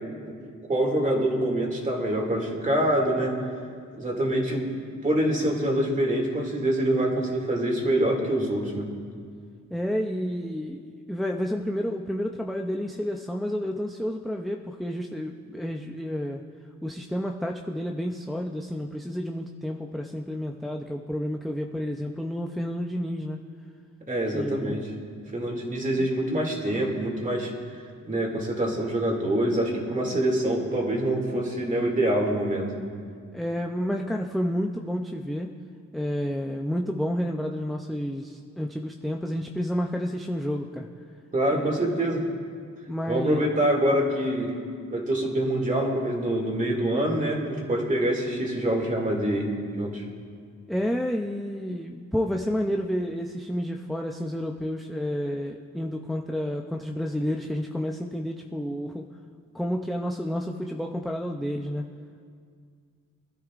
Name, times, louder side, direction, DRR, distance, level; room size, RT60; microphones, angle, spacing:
voice 1, 0.7-3.4 4.0-4.7 5.0-8.9 24.1-24.9 25.3-27.5 28.0-32.7 41.3-42.2 43.1-44.5 44.9-49.5 49.8-50.0, right 1 dB, 25° right, 0 dB, 2.3 m, -25 dB
voice 2, 9.7-16.4 16.8-23.4 24.3-24.8 26.0-26.1 33.3-35.5 35.9-40.9 41.5-41.9 42.9-43.5 50.7-59.1 59.5-61.8, equal, ahead, 1 dB, 0.4 m, -30 dB
24.0 x 13.0 x 2.5 m, 2.2 s
wide cardioid pair, 140°, 30 cm